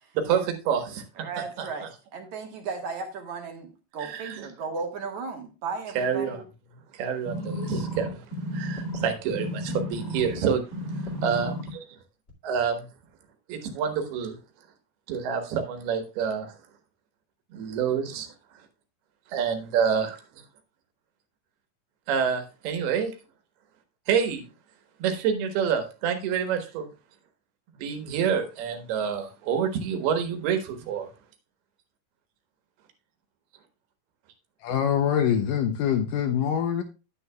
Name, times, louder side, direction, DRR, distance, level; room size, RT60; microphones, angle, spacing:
voice 1, 0.3-0.8 1.6-1.7 4.0-4.4 6.0-6.4 7.0-8.1 8.5-9.5 9.7-10.6 11.2-11.5 12.4-12.7 13.5-14.3 15.1-16.5 17.6-18.3 19.3-20.2 22.1-23.1 24.1-24.4 25.0-26.8 27.8-31.1, right 7 dB, 80° right, 3.3 m, -27 dB
voice 2, 1.2-1.9 2.1-6.4, right 4 dB, 60° right, 2.4 m, -35 dB
sound 1, 7.2-10.4 10.7-11.7 12.3-12.4, equal, 25° left, 1.2 m, -32 dB
voice 3, 34.6-36.8, left 8 dB, 75° left, 2.0 m, -24 dB
9.8 x 9.5 x 2.3 m
omnidirectional pair, 4.5 m